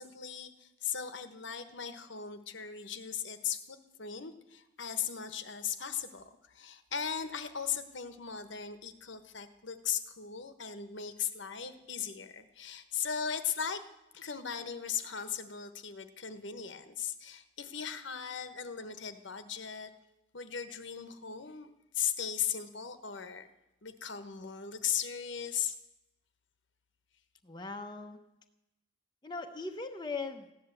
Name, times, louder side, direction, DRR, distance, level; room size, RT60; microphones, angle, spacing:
voice 1, 0.0-13.8 14.1-19.9 20.3-21.7 21.9-23.5 23.8-25.7, left 8 dB, 70° left, 10 dB, 1.1 m, -38 dB
voice 2, 27.4-28.2 29.2-30.5, left 3 dB, 20° left, 4 dB, 0.8 m, -39 dB
15.5 x 10.5 x 7.9 m, 0.94 s
head